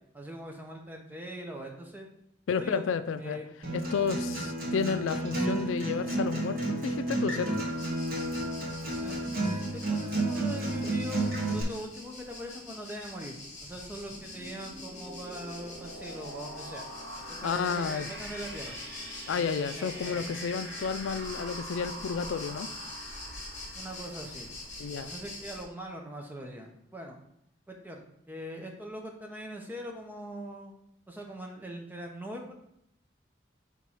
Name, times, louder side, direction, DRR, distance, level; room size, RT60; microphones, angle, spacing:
voice 1, 0.1-2.1 2.5-2.8 3.2-3.5 9.0-9.2 9.4-16.9 17.3-18.8 19.3-20.4 23.7-24.5 25.0-27.2 27.7-30.8 31.1-32.5, right 1 dB, 10° right, 1 dB, 0.8 m, -42 dB
voice 2, 2.5-3.4 3.7-7.5 17.4-18.1 19.3-22.7 24.8-25.1, left 6 dB, 85° left, 11 dB, 0.4 m, -31 dB
Acoustic guitar, 3.6-11.6, right 2 dB, 45° right, 1.8 m, -31 dB
sound 1, 7.7-25.6, left 2 dB, 35° left, 1.6 m, -44 dB
sound 2, 13.5-25.2, equal, 65° right, 2.2 m, -45 dB
4.6 x 3.7 x 5.5 m, 0.75 s
head